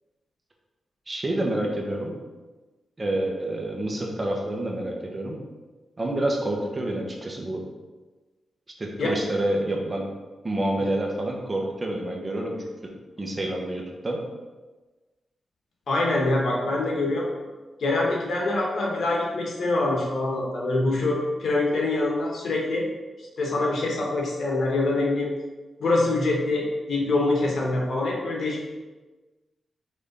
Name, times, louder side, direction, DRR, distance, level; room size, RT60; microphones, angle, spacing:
voice 1, 1.1-2.2 3.0-5.4 6.0-7.6 8.8-10.0 10.4-12.9 13.2-14.2, right 1 dB, 30° right, 0 dB, 1.3 m, -28 dB
voice 2, 15.9-17.3 17.8-22.9 23.4-25.3 25.8-28.6, left 2 dB, 70° left, -2 dB, 1.7 m, -24 dB
5.2 x 4.0 x 5.5 m, 1.2 s
cardioid pair, 70°, 0 cm